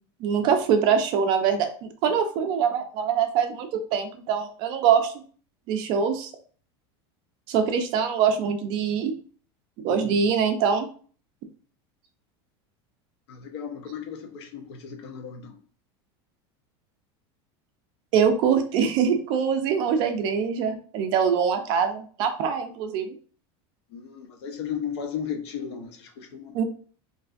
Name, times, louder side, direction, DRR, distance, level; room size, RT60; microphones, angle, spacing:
voice 1, 0.2-5.1 5.7-6.3 7.5-9.1 9.8-10.9 18.1-23.1 26.5-26.6, right 7 dB, 35° right, 6 dB, 0.3 m, -23 dB
voice 2, 9.9-10.3 13.3-15.6 23.9-26.6, left 8 dB, 85° left, 4 dB, 0.7 m, -35 dB
2.5 x 2.4 x 2.4 m, 0.43 s
supercardioid pair, 175°, 13 cm